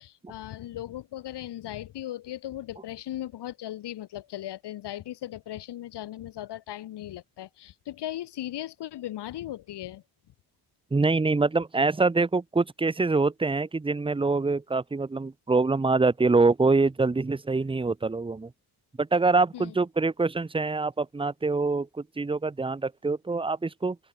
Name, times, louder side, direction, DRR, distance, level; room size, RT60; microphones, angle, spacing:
voice 1, 0.0-10.0 19.5-19.7, left 13 dB, 80° left, 3.4 m, -37 dB
voice 2, 10.9-18.5 19.0-24.0, right 3 dB, 15° right, 1.0 m, -25 dB
open air
cardioid pair, 110°, 40 cm